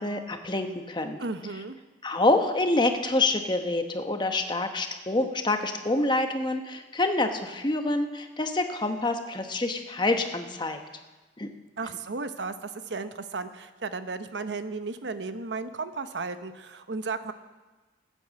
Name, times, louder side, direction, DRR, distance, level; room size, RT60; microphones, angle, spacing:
voice 1, 0.0-1.2 2.0-10.8 11.4-11.5, left 2 dB, 25° left, 6 dB, 1.0 m, -27 dB
voice 2, 1.2-1.8 11.8-17.3, right 4 dB, 75° right, 10 dB, 0.8 m, -34 dB
13.5 x 9.2 x 7.5 m, 1.2 s
head